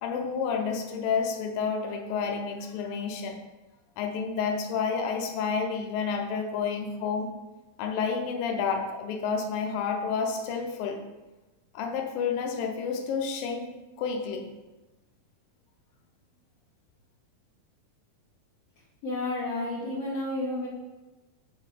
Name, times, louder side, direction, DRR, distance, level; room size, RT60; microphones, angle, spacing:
voice 1, 0.0-3.4 4.0-7.3 7.8-11.0 11.7-13.7 14.0-14.5, left 5 dB, 75° left, 3 dB, 2.4 m, -30 dB
voice 2, 19.0-20.7, left 2 dB, 60° left, -7 dB, 1.6 m, -31 dB
6.9 x 3.9 x 4.8 m, 1.1 s
omnidirectional pair, 4.3 m